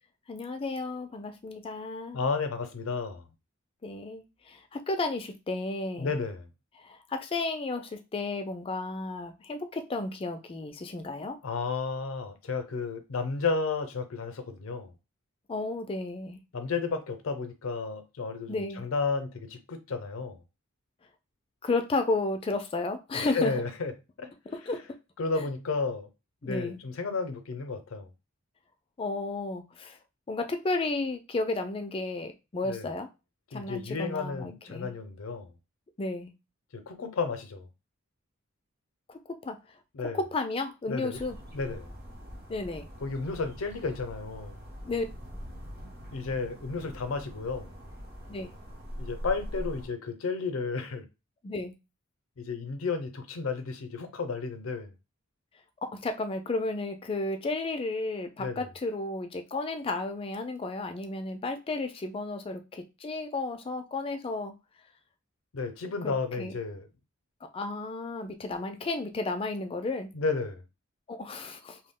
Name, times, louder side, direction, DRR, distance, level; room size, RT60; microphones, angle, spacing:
voice 1, 0.3-2.2 3.8-6.2 6.8-11.4 15.5-16.4 18.5-18.8 21.6-23.5 24.5-24.8 25.4-25.5 26.4-26.8 29.0-30.0 30.3-33.1 33.5-34.9 36.0-36.3 39.1-39.6 40.0-41.4 42.5-42.9 44.8-45.0 48.3-48.5 51.4-51.7 55.8-64.5 66.0-66.5 67.5-70.1 71.1-71.8, left 3 dB, 25° left, 0.3 m, -33 dB
voice 2, 2.1-3.2 6.0-6.5 11.4-14.9 16.5-20.4 23.1-23.9 24.2-24.3 25.2-26.1 26.4-28.1 32.7-32.9 33.5-35.5 36.7-37.7 39.9-40.2 40.9-41.2 41.5-41.9 43.0-44.6 46.1-47.7 49.0-51.0 52.4-54.9 58.4-58.7 65.5-66.9 70.1-70.6, left 4 dB, 80° left, 0.5 m, -32 dB
sound 1, 41.1-49.9, equal, 50° right, 0.9 m, -43 dB
2.2 x 2.1 x 3.5 m
head